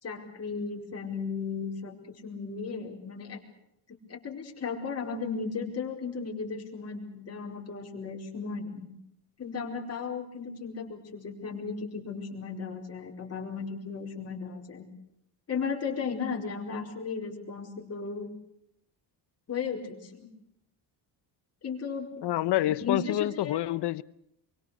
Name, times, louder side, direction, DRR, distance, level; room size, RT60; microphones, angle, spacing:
voice 1, 0.0-3.4 3.9-8.9 9.4-14.9 15.5-18.3 19.5-20.3 21.6-22.1 22.7-23.6, left 5 dB, 35° left, 4.9 m, -35 dB
voice 2, 22.2-24.0, left 14 dB, 65° left, 0.9 m, -27 dB
25.5 x 24.0 x 6.6 m
cardioid pair, 155°, 44 cm